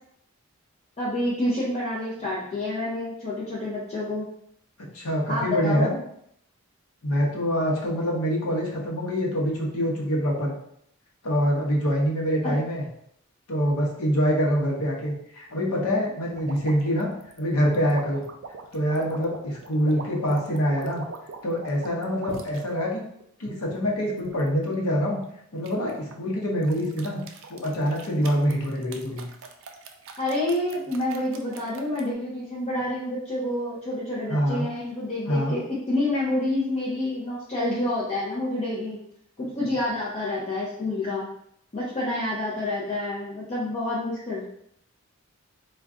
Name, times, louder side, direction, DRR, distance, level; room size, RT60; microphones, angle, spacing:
voice 1, 1.0-4.3 5.3-5.9 12.4-12.5 30.2-35.6 35.9-39.0 39.4-41.3 41.7-44.4, left 1 dB, 30° left, -8 dB, 0.5 m, -28 dB
voice 2, 4.9-6.0 7.0-10.5 11.2-12.8 13.5-17.1 17.4-18.2 18.7-21.0 21.4-23.0 23.4-25.2 25.5-27.2 27.5-29.2 34.3-34.7 35.3-35.6, equal, 85° left, -1 dB, 0.7 m, -25 dB
sound 1, 16.4-22.6 23.2-24.5 25.6-26.2 26.6-32.1, right 4 dB, 55° right, 0.3 m, -41 dB
2.4 x 2.2 x 3.6 m, 0.71 s
head